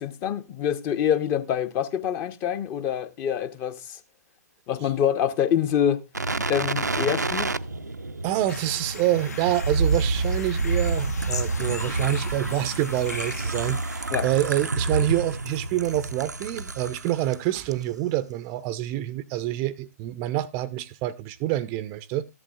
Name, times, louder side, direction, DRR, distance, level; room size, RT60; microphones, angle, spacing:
voice 1, 0.0-4.0 4.7-6.0 6.5-7.5 14.1-14.2, left 9 dB, 25° left, 0.7 m, -25 dB
sound 1, 6.1-17.4 17.7-17.8, right 3 dB, 85° right, 0.5 m, -28 dB
voice 2, 8.2-22.3, right 14 dB, 30° right, 0.5 m, -27 dB
sound 2, 8.5-14.1, left 5 dB, 70° left, 1.0 m, -39 dB
14.0 x 11.0 x 2.3 m
figure-of-eight pair, 115°, 9 cm